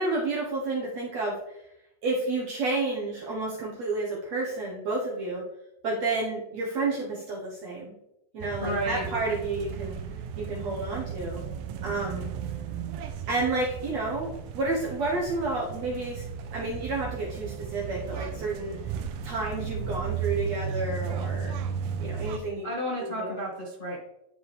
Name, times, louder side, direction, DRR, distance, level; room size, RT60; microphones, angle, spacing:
voice 1, 0.0-1.3 2.0-5.4 5.8-7.9 8.3-10.0 10.4-11.4 11.8-12.3 13.3-14.3 14.5-16.3 16.5-18.8 19.2-21.5 22.0-22.7 23.0-23.3, right 3 dB, 65° right, -3 dB, 1.7 m, -30 dB
sound 1, 8.4-22.4, right 7 dB, 85° right, 1.9 m, -35 dB
voice 2, 8.6-9.0 22.6-24.0, equal, 75° left, -5 dB, 0.4 m, -31 dB
12.5 x 4.9 x 3.4 m, 0.86 s
omnidirectional pair, 4.6 m